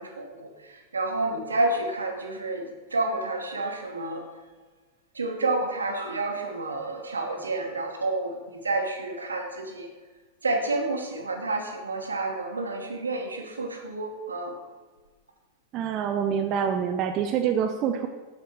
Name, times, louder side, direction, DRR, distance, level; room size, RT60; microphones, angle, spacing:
voice 1, 0.0-4.2 5.1-9.9 10.4-14.5, right 2 dB, 75° right, 3 dB, 1.2 m, -29 dB
voice 2, 15.7-18.1, right 8 dB, 35° right, 5 dB, 0.5 m, -26 dB
7.6 x 6.5 x 4.6 m, 1.3 s
figure-of-eight pair, 90°, 0 cm